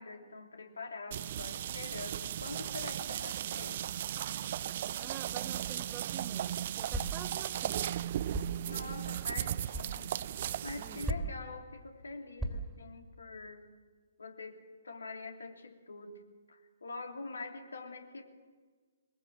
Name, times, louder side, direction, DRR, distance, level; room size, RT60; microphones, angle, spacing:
voice 1, 0.0-3.8 8.7-10.1 10.6-13.6 14.2-16.2 16.5-18.2, left 3 dB, 65° left, 4 dB, 3.2 m, -45 dB
sound 1, 1.1-11.1, right 11 dB, 40° right, 0.6 m, -36 dB
voice 2, 4.9-7.9 10.7-11.1, right 10 dB, 20° right, 10 dB, 1.3 m, -48 dB
Guitar Kick, 6.9-7.3 8.3-8.7 9.7-9.9 11.0-11.5 12.4-12.8, right 1 dB, ahead, 3.2 m, -37 dB
22.5 x 21.5 x 7.6 m, 1.5 s
figure-of-eight pair, 130°, 0 cm